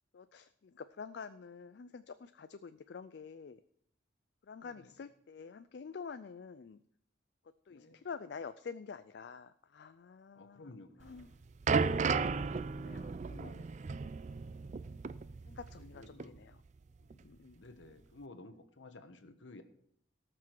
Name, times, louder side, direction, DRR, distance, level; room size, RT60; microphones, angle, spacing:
voice 1, 0.1-3.6 4.4-6.8 7.7-10.7 11.0-11.3 12.7-13.7 15.5-16.6 17.1-17.7, left 5 dB, 60° left, 12 dB, 0.4 m, -48 dB
voice 2, 4.6-4.9 7.7-8.0 10.3-11.3 15.8-16.4 17.5-19.6, left 2 dB, 80° left, 8 dB, 1.2 m, -54 dB
sound 1, 11.1-15.9 16.2-16.4 17.1-17.2, right 5 dB, 40° right, 0.3 m, -34 dB
18.0 x 6.1 x 4.6 m, 0.68 s
head